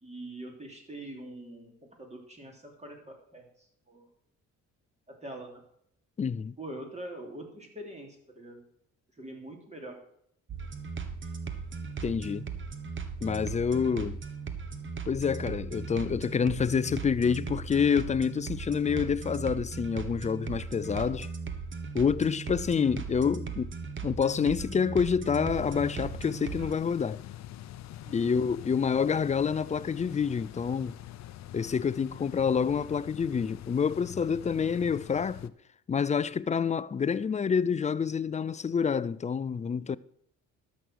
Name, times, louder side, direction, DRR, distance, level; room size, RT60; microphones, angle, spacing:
voice 1, 0.0-4.1 5.1-5.6 6.6-8.6 9.2-10.0 28.0-28.4, right 1 dB, 20° right, 3.1 m, -44 dB
voice 2, 6.2-6.6 12.0-12.5 13.2-14.2 15.1-21.3 21.9-23.7 24.0-27.2 28.1-30.9 31.5-35.5 35.9-40.0, left 6 dB, 25° left, 0.4 m, -28 dB
sound 1, 10.5-26.7, right 5 dB, 40° right, 1.4 m, -38 dB
sound 2, 25.5-35.5, left 12 dB, 65° left, 0.6 m, -45 dB
12.5 x 6.4 x 6.3 m
cardioid pair, 90°, 30 cm